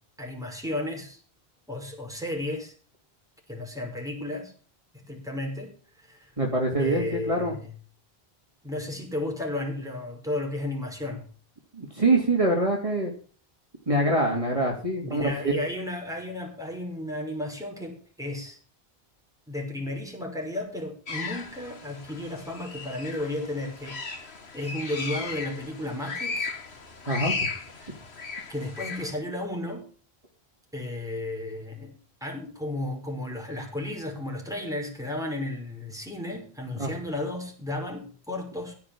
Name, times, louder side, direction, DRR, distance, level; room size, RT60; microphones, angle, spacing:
voice 1, 0.2-1.2 1.7-2.7 3.5-4.5 5.1-6.3 6.8-7.7 8.6-11.3 15.0-18.6 19.5-24.0 24.5-26.5 27.8-28.0 28.5-29.8 30.7-31.9 32.2-38.7, left 1 dB, 5° right, 0 dB, 5.5 m, -33 dB
voice 2, 6.4-7.5 11.7-13.1 13.9-15.5 27.1-27.4 36.8-36.9, right 2 dB, 30° right, -1 dB, 3.2 m, -24 dB
sound 1, 21.1-29.1, left 4 dB, 85° left, 2.0 m, -36 dB
16.5 x 6.1 x 8.7 m, 0.41 s
omnidirectional pair, 1.1 m